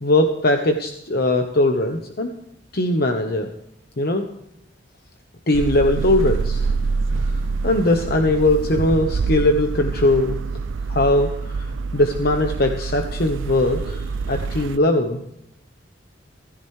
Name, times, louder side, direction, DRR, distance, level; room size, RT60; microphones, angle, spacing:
voice 1, 0.0-2.3 2.7-3.5 4.0-4.2 5.5-6.7 7.2-10.4 10.9-11.7 11.9-15.2, left 1 dB, 55° left, 5 dB, 1.1 m, -20 dB
sound 1, 5.5-14.8, right 4 dB, 80° right, 0.4 m, -26 dB
16.5 x 15.5 x 3.2 m, 0.81 s
head